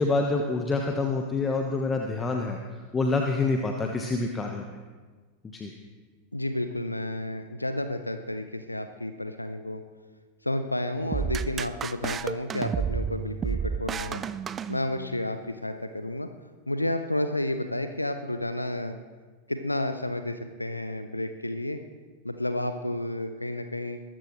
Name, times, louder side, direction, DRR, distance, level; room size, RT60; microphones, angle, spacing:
voice 1, 0.0-2.6 2.9-4.6 5.5-5.8, left 3 dB, 15° left, 3 dB, 1.2 m, -27 dB
voice 2, 6.3-9.8 10.4-14.2 14.7-16.3 16.7-19.0 19.5-21.8 22.2-24.0, left 1 dB, 85° left, 8 dB, 0.7 m, -31 dB
sound 1, 11.1-15.3, right 7 dB, 25° right, 0.5 m, -31 dB
22.5 x 14.0 x 3.2 m, 1.4 s
figure-of-eight pair, 90°, 0 cm